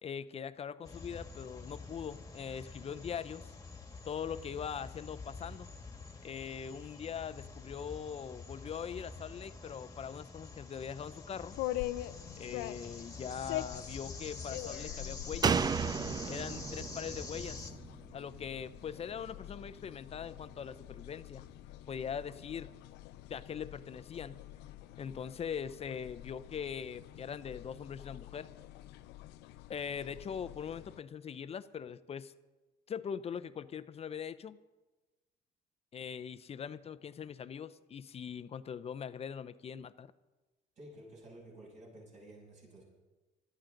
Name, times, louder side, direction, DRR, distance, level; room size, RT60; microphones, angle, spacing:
voice 1, 0.0-3.5 4.1-5.7 6.2-11.6 12.4-15.6 16.3-17.6 18.1-21.4 21.9-22.7 23.3-24.4 25.0-28.5 29.7-32.3 32.9-34.6 35.9-40.1, left 7 dB, 35° left, 14 dB, 0.6 m, -41 dB
sound 1, 0.8-17.7, left 3 dB, 20° left, 1.6 m, -47 dB
sound 2, 11.5-31.0, left 15 dB, 90° left, 0.6 m, -45 dB
Slam, 15.4-18.9 19.2-19.3, right 6 dB, 25° right, 0.4 m, -34 dB
voice 2, 40.7-42.8, right 1 dB, 45° right, -3 dB, 6.7 m, -52 dB
19.5 x 13.5 x 3.9 m, 1.2 s
cardioid pair, 110°, 17 cm